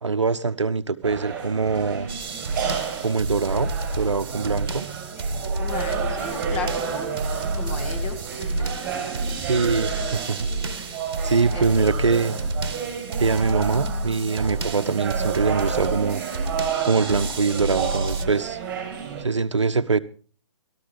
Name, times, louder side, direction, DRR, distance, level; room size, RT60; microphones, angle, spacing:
voice 1, 0.0-2.1 3.0-4.9 9.5-10.5 11.2-12.4 13.2-16.2 16.9-18.6 19.2-20.0, right 4 dB, 70° right, 0.8 m, -23 dB
sound 1, 1.0-19.2, right 7 dB, 15° right, 5.2 m, -31 dB
sound 2, 2.1-18.3, right 2 dB, 50° right, 1.3 m, -30 dB
voice 2, 5.6-7.1 7.5-9.0 11.5-11.9, left 4 dB, 25° left, 2.1 m, -35 dB
17.5 x 13.0 x 3.5 m
figure-of-eight pair, 135°, 16 cm